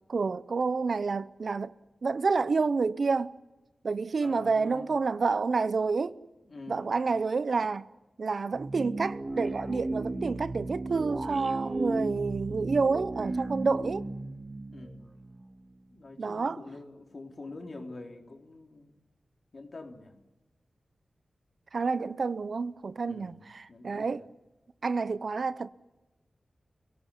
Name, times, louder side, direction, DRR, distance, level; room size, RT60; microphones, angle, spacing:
voice 1, 0.1-1.7 2.0-3.4 3.8-6.2 6.7-7.9 8.2-14.1 16.2-16.6 21.7-24.2 24.8-25.7, right 4 dB, 65° right, 0.8 m, -29 dB
voice 2, 4.2-4.9 6.4-6.9 14.7-15.1 15.9-19.0 19.5-20.2 23.0-24.3, left 2 dB, 55° left, 3.9 m, -46 dB
Tubular Surprise, 8.5-15.7, right 2 dB, 30° right, 2.1 m, -35 dB
29.0 x 17.0 x 8.6 m
wide cardioid pair, 75°, 0 cm